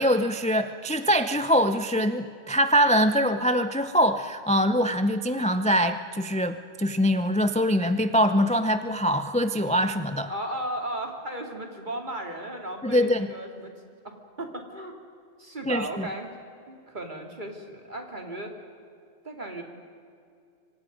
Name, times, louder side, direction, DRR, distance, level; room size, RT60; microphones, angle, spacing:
voice 1, 0.0-10.3 12.8-13.3 15.7-16.1, equal, 10° left, 9 dB, 0.6 m, -23 dB
voice 2, 10.3-13.7 14.0-14.9 15.4-16.3 16.7-18.5 19.2-19.6, right 1 dB, 45° right, 2 dB, 2.9 m, -35 dB
27.0 x 24.5 x 5.3 m, 2.4 s
omnidirectional pair, 1.1 m